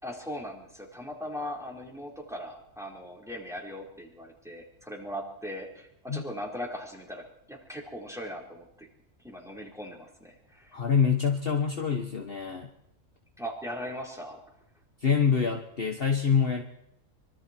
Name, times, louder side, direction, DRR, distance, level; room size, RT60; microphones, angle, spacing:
voice 1, 0.0-8.9 9.2-10.8 13.4-14.4, equal, ahead, -1 dB, 4.3 m, -39 dB
voice 2, 10.7-12.7 15.0-16.6, left 6 dB, 45° left, 3 dB, 1.5 m, -26 dB
25.0 x 23.5 x 4.5 m, 0.77 s
omnidirectional pair, 1.5 m